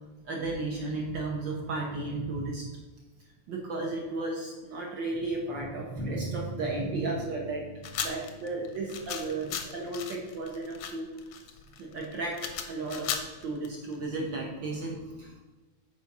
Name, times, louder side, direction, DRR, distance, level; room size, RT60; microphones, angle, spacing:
voice 1, 0.2-2.6 3.5-7.6 8.0-11.1 11.8-12.4 12.7-15.4, right 2 dB, 65° right, -1 dB, 1.2 m, -34 dB
sound 1, 6.0-9.7, equal, 35° right, 0.9 m, -43 dB
sound 2, 7.8-14.1, left 7 dB, 75° left, 1.3 m, -36 dB
7.3 x 4.5 x 5.9 m, 1.2 s
omnidirectional pair, 3.4 m